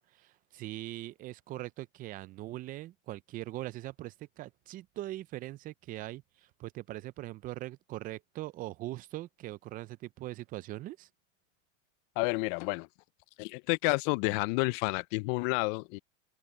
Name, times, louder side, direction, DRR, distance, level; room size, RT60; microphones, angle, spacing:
voice 1, 0.0-11.1, right 16 dB, 25° right, 0.3 m, -41 dB
voice 2, 12.2-12.9 13.4-16.0, left 29 dB, 45° left, 0.4 m, -30 dB
supercardioid pair, 130°, 38 cm